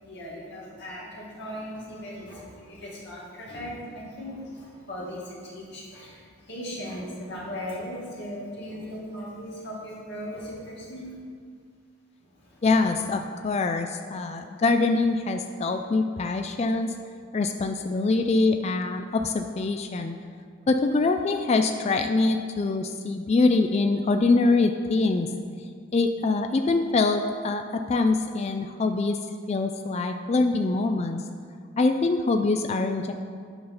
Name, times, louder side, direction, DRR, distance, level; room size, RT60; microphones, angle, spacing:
voice 1, 0.0-11.1 12.2-12.6, equal, 50° left, -5 dB, 2.2 m, -38 dB
voice 2, 12.6-16.9 17.3-20.1 20.7-25.3 25.9-29.2 29.5-31.2 31.8-33.1, left 3 dB, 30° left, 6 dB, 0.3 m, -24 dB
8.6 x 5.5 x 5.5 m, 2.1 s
head